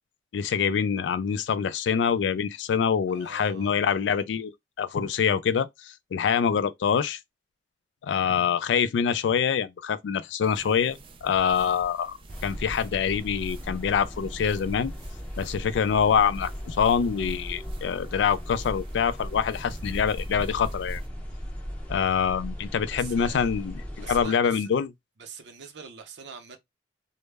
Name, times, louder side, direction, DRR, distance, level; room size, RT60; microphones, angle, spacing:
voice 1, 0.3-7.2 8.0-14.9 15.4-21.0 21.9-24.9, left 7 dB, 80° left, 0.3 m, -25 dB
voice 2, 3.1-3.8 11.5-11.7 22.9-23.5 24.0-24.7 25.2-26.6, right 6 dB, 70° right, 0.6 m, -44 dB
sound 1, 10.4-21.1, right 1 dB, 30° right, 0.3 m, -44 dB
sound 2, 12.3-24.3, equal, 5° left, 0.6 m, -37 dB
2.0 x 2.0 x 3.3 m
head